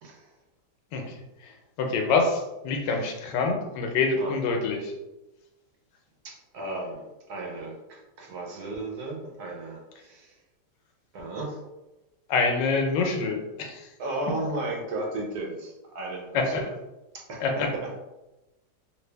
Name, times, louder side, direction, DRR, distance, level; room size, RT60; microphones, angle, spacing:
voice 1, 1.8-4.9 12.3-13.9 16.3-16.7 17.4-17.7, left 4 dB, 90° left, 3 dB, 1.3 m, -26 dB
voice 2, 6.2-10.4 11.1-11.6 14.0-16.7 17.1-18.0, right 2 dB, 70° right, 0 dB, 1.2 m, -35 dB
3.2 x 2.5 x 3.3 m, 1.0 s
omnidirectional pair, 1.8 m